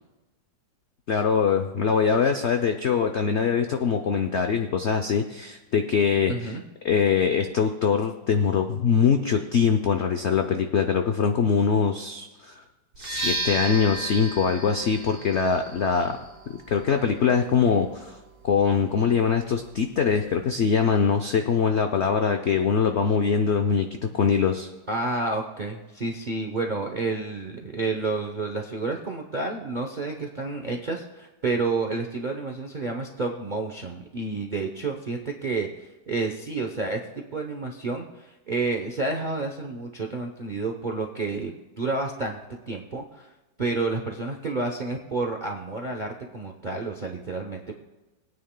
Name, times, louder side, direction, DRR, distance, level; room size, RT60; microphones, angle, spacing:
voice 1, 1.1-6.5 6.8-12.6 13.0-16.2 16.7-18.2 18.4-23.9 24.1-24.7, left 6 dB, 90° left, 6 dB, 0.6 m, -23 dB
voice 2, 6.3-6.6 24.9-42.4 42.7-43.3 43.6-47.7, right 3 dB, 55° right, 2 dB, 0.5 m, -30 dB
sound 1, 12.9-20.7, right 1 dB, 80° right, 2.5 m, -36 dB
20.5 x 9.3 x 2.2 m, 1.1 s
omnidirectional pair, 2.0 m